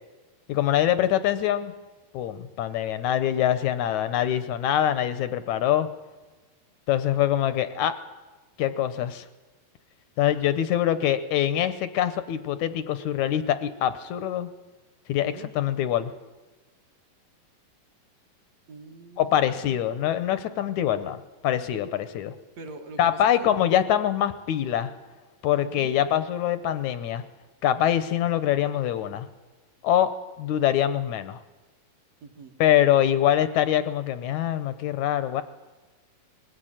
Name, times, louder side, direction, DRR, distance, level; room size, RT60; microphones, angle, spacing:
voice 1, 0.5-1.7 2.1-5.9 6.9-8.0 8.6-9.3 10.2-14.5 15.1-16.1 19.2-22.4 23.0-24.9 25.4-27.2 27.6-29.3 29.8-31.4 32.6-35.4, left 11 dB, 75° left, 12 dB, 1.9 m, -24 dB
voice 2, 15.2-15.5 18.7-19.8 22.6-23.5 25.6-25.9 32.2-32.6, right 3 dB, 50° right, 5 dB, 2.7 m, -44 dB
21.0 x 16.5 x 9.0 m, 1.2 s
omnidirectional pair, 4.2 m